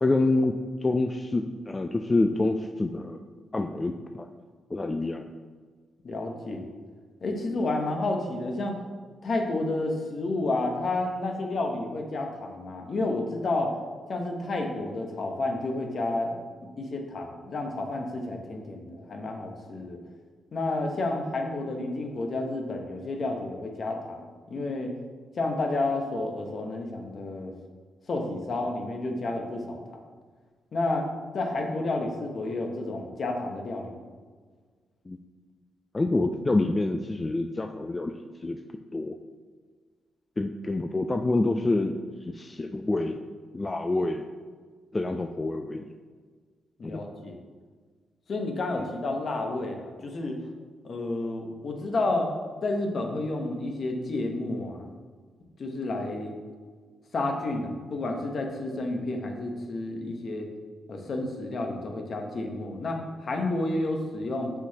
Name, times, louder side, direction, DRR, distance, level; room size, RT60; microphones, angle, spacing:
voice 1, 0.0-0.6 0.8-3.2 3.5-4.3 4.7-5.3 35.1-35.2 35.9-38.6 38.9-39.2 40.4-42.0 42.3-43.2 43.5-44.3 44.9-45.9 46.8-47.0, left 2 dB, 25° left, 6 dB, 0.3 m, -27 dB
voice 2, 6.0-6.7 7.2-8.7 9.2-13.7 14.1-16.3 16.8-20.0 20.5-24.9 25.4-27.5 28.1-29.8 30.7-31.1 31.3-34.1 46.8-47.4 48.3-50.4 50.8-52.3 52.6-54.9 55.6-56.4 57.1-60.5 60.9-64.5, left 2 dB, 55° left, 3 dB, 0.9 m, -30 dB
5.9 x 5.8 x 2.9 m, 1.5 s
cardioid pair, 70°, 0 cm